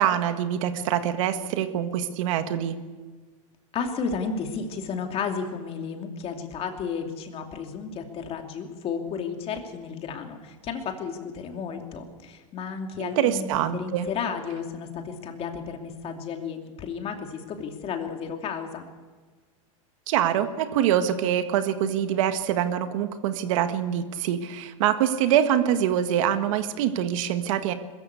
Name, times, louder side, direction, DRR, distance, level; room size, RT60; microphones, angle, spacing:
voice 1, 0.0-2.8 13.0-14.1 20.1-27.7, right 10 dB, 65° right, 9 dB, 1.7 m, -24 dB
voice 2, 3.7-18.8, left 6 dB, 35° left, 4 dB, 2.7 m, -33 dB
21.5 x 14.5 x 8.3 m, 1.4 s
hypercardioid pair, 125°, 18 cm